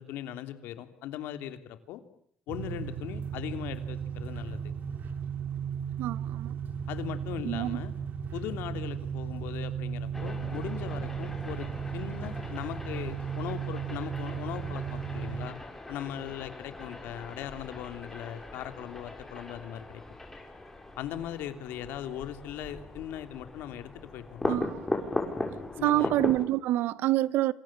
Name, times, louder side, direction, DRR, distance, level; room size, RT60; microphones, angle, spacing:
voice 1, 0.0-2.0 2.5-4.6 6.9-7.9 8.3-15.6 15.9-20.0 21.0-24.6 25.8-26.1, left 11 dB, 90° left, 3.1 m, -39 dB
sound 1, 2.5-15.5, right 7 dB, 60° right, 2.8 m, -35 dB
voice 2, 6.0-6.5 7.4-7.8 24.5-24.7 25.8-27.5, right 15 dB, 80° right, 1.1 m, -27 dB
sound 2, 10.1-26.5, left 2 dB, 10° left, 6.8 m, -39 dB
28.0 x 27.0 x 7.5 m
cardioid pair, 110°, 3 cm